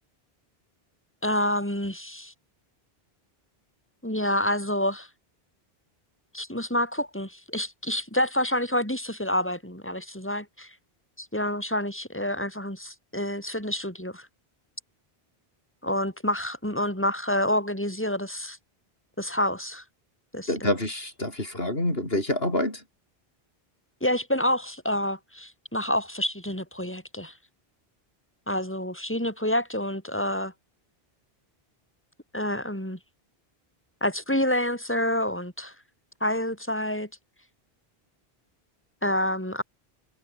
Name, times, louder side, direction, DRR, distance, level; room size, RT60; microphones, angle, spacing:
voice 1, 1.2-2.3 4.0-5.1 6.3-10.7 11.2-14.3 15.8-18.6 19.2-19.8 20.3-20.7 24.0-27.3 28.5-30.5 32.3-33.0 34.0-35.7 36.2-37.1 39.0-39.6, left 1 dB, 10° left, 7.2 m, -28 dB
voice 2, 20.5-22.8, left 1 dB, 70° left, 7.4 m, -27 dB
omnidirectional pair, 1.0 m